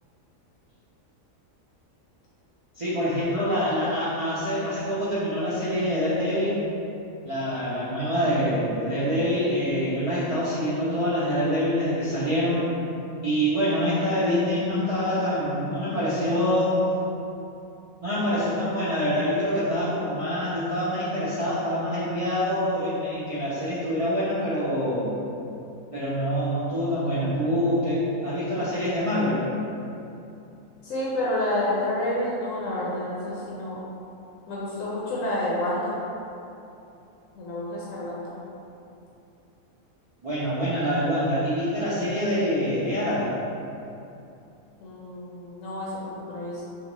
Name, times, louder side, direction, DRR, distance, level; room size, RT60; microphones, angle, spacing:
voice 1, 2.8-6.6 7.2-12.7 13.2-16.9 18.0-25.1 25.9-29.4 40.2-43.3, equal, 55° right, -12 dB, 0.3 m, -25 dB
voice 2, 30.8-33.8 34.5-35.9 37.4-38.3 44.8-46.6, left 1 dB, 75° left, -6 dB, 1.0 m, -29 dB
3.9 x 2.4 x 3.0 m, 2.8 s
omnidirectional pair, 1.5 m